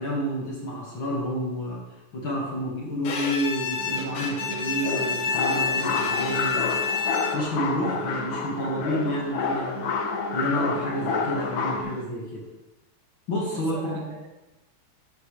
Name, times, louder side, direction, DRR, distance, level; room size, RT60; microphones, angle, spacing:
voice 1, 0.0-1.8 2.1-6.8 7.3-9.9 10.3-12.5 13.3-14.0, equal, 40° left, -3 dB, 2.2 m, -29 dB
Bowed string instrument, 3.0-7.6, left 5 dB, 60° left, 1.5 m, -29 dB
sound 1, 3.8-12.0, right 3 dB, 60° right, 1.6 m, -40 dB
sound 2, 4.8-11.8, left 5 dB, 75° left, 1.3 m, -29 dB
voice 2, 13.5-14.5, right 3 dB, 85° right, 1 dB, 3.2 m, -41 dB
12.0 x 9.3 x 3.3 m, 1.0 s
omnidirectional pair, 3.8 m